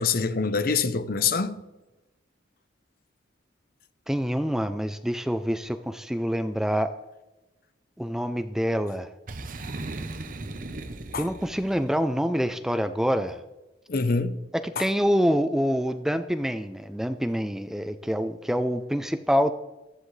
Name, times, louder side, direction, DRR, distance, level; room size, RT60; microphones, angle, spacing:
voice 1, 0.0-1.6 11.1-11.3 13.9-14.4 14.8-14.9, left 4 dB, 50° left, 0.7 m, -25 dB
voice 2, 4.1-6.9 8.0-9.1 11.2-13.4 14.6-19.5, equal, ahead, 0.4 m, -26 dB
Boom, 9.3-12.0, right 2 dB, 45° right, 0.8 m, -37 dB
15.0 x 12.5 x 3.3 m
head